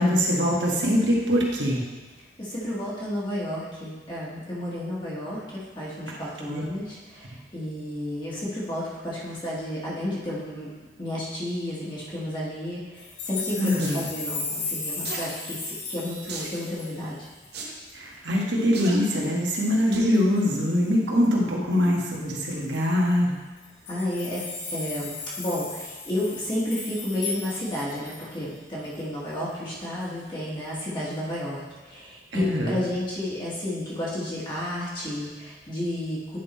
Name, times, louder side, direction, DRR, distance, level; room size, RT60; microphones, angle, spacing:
voice 1, 0.0-1.8 6.5-6.6 13.6-14.0 17.9-23.3 32.3-32.8, equal, 85° right, -3 dB, 1.5 m, -23 dB
voice 2, 2.4-10.7 11.0-17.3 23.9-36.4, left 1 dB, 25° left, -7 dB, 1.5 m, -32 dB
sound 1, 13.0-17.5 17.9-18.0 18.3-18.4 18.8-19.3 20.4-20.6 22.3-22.4 22.6-22.7 23.6-28.4 28.9-29.0, left 3 dB, 85° left, 1.4 m, -36 dB
sound 2, 13.8-14.0 15.0-15.3 16.3-16.6 17.5-17.7 18.7-19.0 19.9-20.2 20.7-20.8, right 3 dB, 65° right, 1.0 m, -35 dB
9.5 x 3.8 x 4.1 m, 1.3 s
head